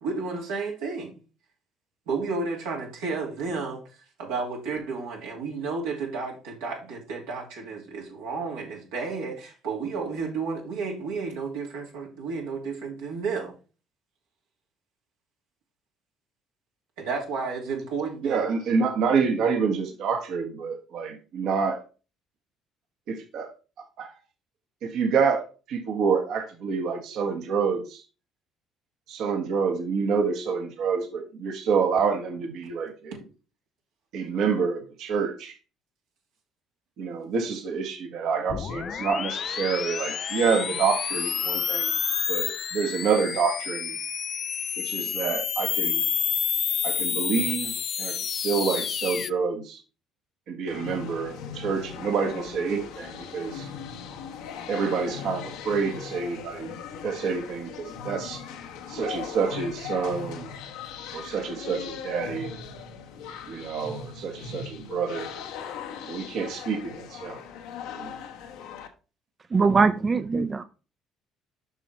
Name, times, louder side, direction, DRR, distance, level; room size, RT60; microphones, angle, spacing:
voice 1, 0.0-1.1 2.1-3.8 4.2-13.5 17.0-18.5 19.2-19.3, right 4 dB, 90° right, 2.9 m, -32 dB
voice 2, 18.2-21.8 23.1-23.5 24.0-24.1 24.8-28.0 29.1-33.2 34.1-35.6 37.0-41.9 42.3-44.0 44.8-46.0 46.8-47.7 48.0-49.8 50.5-53.7 54.7-58.4 58.9-60.5 61.1-62.6 63.5-65.3 66.1-67.4 68.0-68.2, right 5 dB, 70° right, 1.6 m, -27 dB
sound 1, 38.5-49.3, left 8 dB, 50° left, 0.3 m, -29 dB
sound 2, 50.7-68.9, left 7 dB, 85° left, 1.1 m, -39 dB
voice 3, 69.5-70.6, right 4 dB, 35° right, 0.5 m, -21 dB
6.8 x 5.9 x 4.4 m
supercardioid pair, 70°, 0 cm